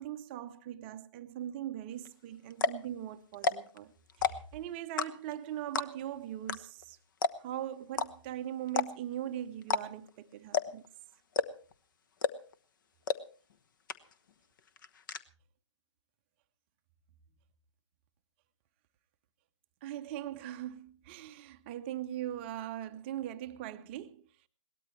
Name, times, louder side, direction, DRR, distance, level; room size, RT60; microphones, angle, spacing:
voice 1, 0.0-3.9 4.2-7.0 7.4-10.8 19.8-24.3, right 12 dB, 20° right, 0.7 m, -40 dB
sound 1, 2.1-2.2 2.5-2.9 3.3-3.8 4.1-4.5 5.0-5.4 5.7-6.1 6.5-6.6 6.8-6.9 7.2-7.6 7.9-8.1 8.7-9.1 9.6-10.1 10.5-10.9 11.3-11.7 12.2-12.5 13.1-13.2 13.5-13.6 13.9-14.3 14.6-15.2, left 6 dB, 40° left, 1.1 m, -30 dB
21.5 x 18.0 x 3.2 m
figure-of-eight pair, 140°, 16 cm